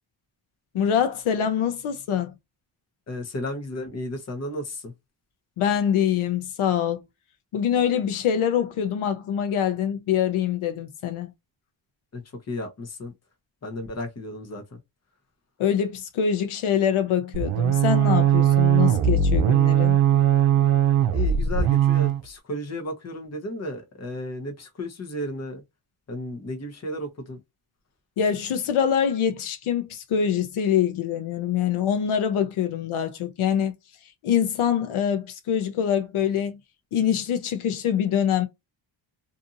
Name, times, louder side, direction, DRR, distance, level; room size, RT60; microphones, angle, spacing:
voice 1, 0.7-2.3 5.6-7.0 7.5-11.3 15.6-20.0 28.2-33.7 34.2-36.6 36.9-38.5, left 8 dB, 80° left, 0.7 m, -24 dB
voice 2, 3.1-4.9 12.1-13.1 13.6-14.8 21.1-25.6 26.1-27.4, left 1 dB, 30° left, 0.9 m, -33 dB
sound 1, 17.3-22.2, right 9 dB, 75° right, 0.6 m, -19 dB
2.7 x 2.5 x 2.5 m
cardioid pair, 110°, 49 cm